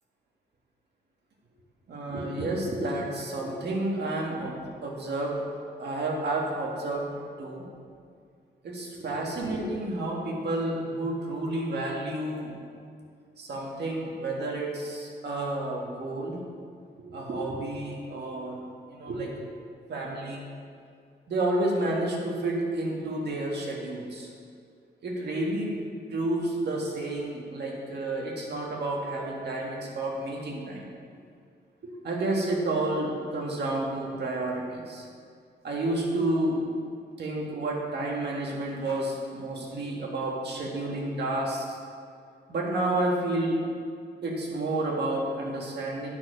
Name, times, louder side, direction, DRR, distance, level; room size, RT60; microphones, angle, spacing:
voice 1, 1.9-7.1 7.4-7.7 8.6-12.5 13.4-16.4 16.9-19.3 19.9-20.5 21.3-24.3 25.0-25.7 26.1-30.9 32.0-35.1 35.6-36.6 37.2-41.8 42.5-43.6 44.2-46.1, right 2 dB, 70° right, -2 dB, 1.7 m, -30 dB
9.6 x 6.6 x 5.0 m, 2.2 s
wide cardioid pair, 150°, 18 cm